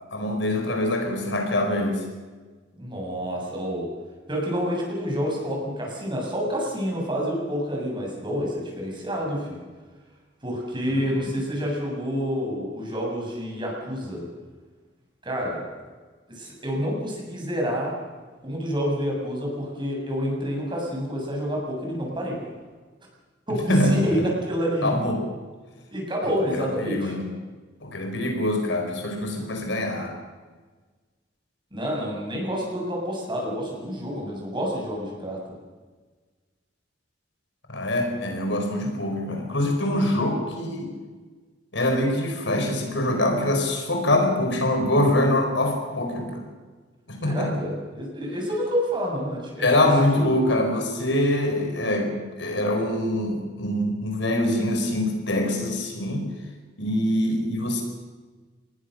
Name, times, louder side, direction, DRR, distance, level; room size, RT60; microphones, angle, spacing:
voice 1, 0.1-2.1 10.9-11.0 23.7-24.3 24.8-25.2 26.5-27.3 27.8-30.1 37.7-40.9 41.7-46.4 47.1-47.5 49.6-56.3 56.8-57.8, left 1 dB, 75° left, 3 dB, 5.2 m, -24 dB
voice 2, 2.8-3.9 4.3-9.6 10.4-14.3 15.2-15.7 16.3-17.9 18.4-22.4 23.5-25.0 25.9-27.1 31.7-35.5 47.2-50.2, equal, 25° right, -1 dB, 7.5 m, -28 dB
27.5 x 20.0 x 6.6 m, 1.4 s
head